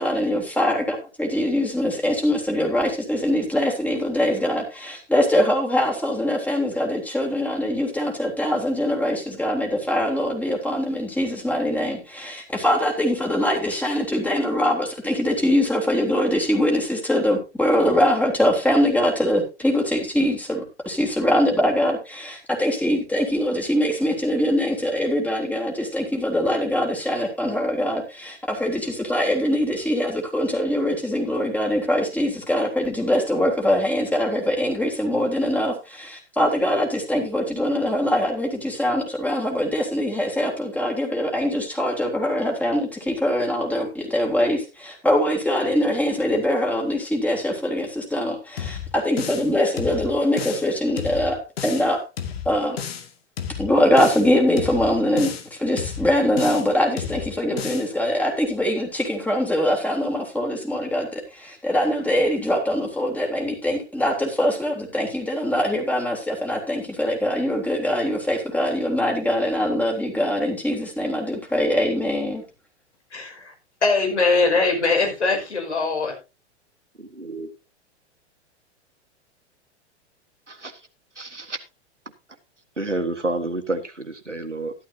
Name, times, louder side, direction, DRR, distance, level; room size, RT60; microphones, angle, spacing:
voice 1, 0.0-52.0 52.4-52.8 53.6-72.4, left 1 dB, 5° left, 0 dB, 3.4 m, -23 dB
sound 1, 48.6-49.5 49.8-50.7 51.0-51.9 52.2-53.1 53.4-54.3 54.6-55.5 55.8-56.7 57.0-57.9, left 8 dB, 60° left, 2.2 m, -32 dB
voice 2, 73.8-76.2, left 3 dB, 75° left, 1 dB, 5.4 m, -21 dB
voice 3, 77.2-77.5 80.5-80.7 81.1-81.6 82.8-84.7, right 2 dB, 90° right, 7 dB, 1.7 m, -29 dB
13.5 x 12.5 x 2.8 m, 0.28 s
figure-of-eight pair, 100°, 35 cm